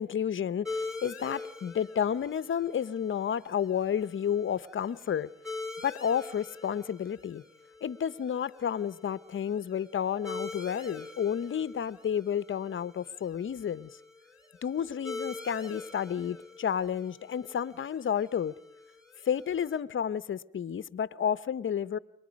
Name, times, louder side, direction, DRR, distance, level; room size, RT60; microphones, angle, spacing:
voice 1, 0.0-5.3 5.8-7.4 7.8-13.9 14.6-18.5 19.2-22.0, left 8 dB, 40° left, 0.8 m, -31 dB
sound 1, 0.6-19.8, left 3 dB, 5° right, 3.6 m, -44 dB
29.5 x 22.5 x 5.2 m
cardioid pair, 90°, 30 cm